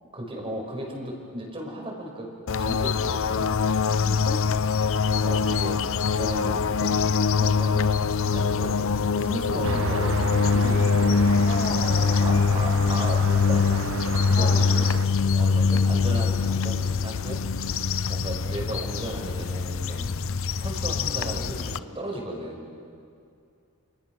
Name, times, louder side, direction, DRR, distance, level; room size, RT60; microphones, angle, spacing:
voice 1, 0.1-2.3 2.6-3.5 5.2-5.8 6.2-7.0 7.4-7.8 8.2-11.3 12.2-15.0 15.3-17.4 18.1-20.2 20.6-22.7, right 1 dB, 25° right, 1 dB, 5.2 m, -35 dB
sound 1, 2.5-21.8, left 5 dB, 65° left, 0.6 m, -23 dB
voice 2, 4.0-4.5 11.5-12.5 14.4-14.8 17.7-17.9, left 2 dB, 35° left, 4 dB, 1.4 m, -34 dB
Traffic noise roadway noise, 9.6-15.1, right 5 dB, 65° right, 0.8 m, -34 dB
29.0 x 27.5 x 6.2 m, 2.4 s
head